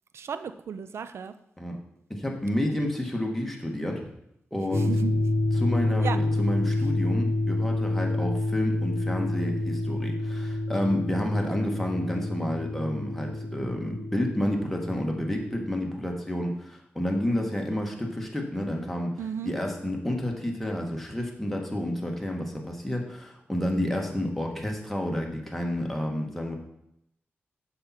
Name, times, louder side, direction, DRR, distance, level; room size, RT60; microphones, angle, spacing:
voice 1, 0.1-1.3 4.8-5.2 6.0-6.2 19.2-19.5, right 7 dB, 75° right, 12 dB, 0.5 m, -34 dB
voice 2, 2.1-4.1 4.5-4.9 5.5-19.1 19.4-26.6, left 1 dB, 5° left, 0 dB, 1.6 m, -30 dB
sound 1, 4.7-15.6, left 2 dB, 35° left, 1.5 m, -28 dB
6.7 x 5.8 x 4.3 m, 0.80 s
cardioid pair, 70°, 4 cm